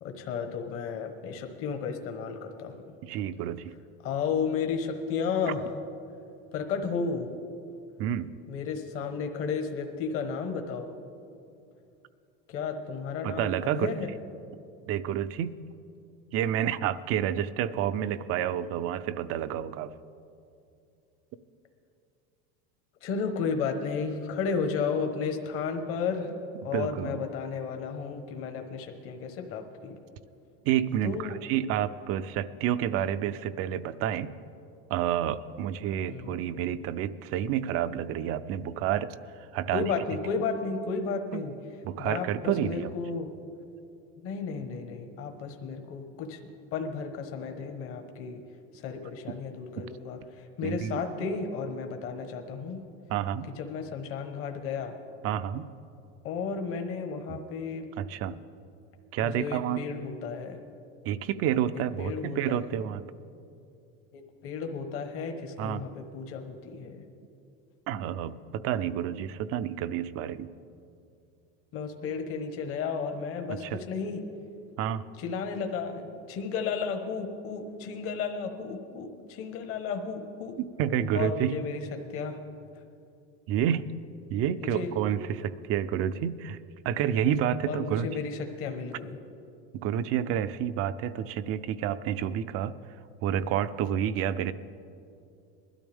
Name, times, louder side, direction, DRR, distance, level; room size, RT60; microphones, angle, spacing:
voice 1, 0.0-2.7 4.0-5.7 6.5-7.3 8.5-10.9 12.5-14.1 23.0-26.3 26.6-30.0 31.0-31.4 36.1-36.4 39.7-41.5 42.0-43.3 44.2-46.4 46.7-48.4 48.8-52.8 53.6-55.0 56.2-57.9 59.2-60.6 62.0-62.6 64.1-67.0 71.7-74.2 75.2-80.6 81.1-81.8 82.1-82.4 84.6-84.9 87.7-89.2, left 5 dB, 45° left, 5 dB, 1.2 m, -33 dB
voice 2, 3.0-3.7 8.0-8.3 13.2-13.9 14.9-15.6 16.3-19.9 26.7-27.3 30.6-34.3 34.9-39.2 39.5-39.8 41.3-41.4 41.8-42.9 50.6-51.0 53.1-53.5 55.2-55.7 58.0-58.4 59.1-59.8 61.0-63.0 65.6-65.8 67.9-70.5 73.5-73.8 74.8-75.0 80.6-81.6 83.5-84.0 84.3-88.1 89.7-92.7 93.2-94.5, right 10 dB, 50° right, 13 dB, 0.5 m, -29 dB
20.5 x 12.5 x 3.5 m, 2.6 s
supercardioid pair, 135°, 30 cm